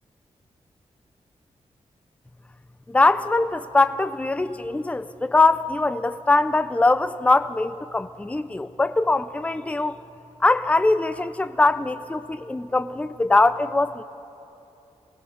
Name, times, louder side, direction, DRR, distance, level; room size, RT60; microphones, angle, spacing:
voice 1, 2.9-10.0 10.4-14.0, left 2 dB, 10° left, 11 dB, 0.5 m, -22 dB
27.5 x 19.0 x 5.2 m, 2.9 s
wide cardioid pair, 115°, 12 cm